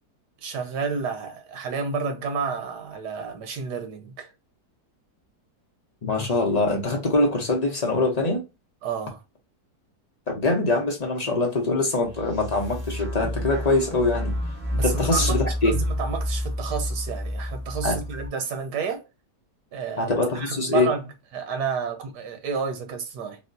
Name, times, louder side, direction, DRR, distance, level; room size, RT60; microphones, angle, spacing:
voice 1, 0.4-4.3 8.8-9.2 14.7-19.0 19.7-23.4, right 5 dB, 90° right, 1.4 m, -30 dB
voice 2, 6.0-8.4 10.3-14.4 14.8-15.7 17.8-18.0 20.0-20.9, left 2 dB, 40° left, 0.5 m, -23 dB
sound 1, 12.0-18.3, left 1 dB, 50° right, 1.5 m, -29 dB
4.2 x 2.1 x 2.6 m
omnidirectional pair, 1.7 m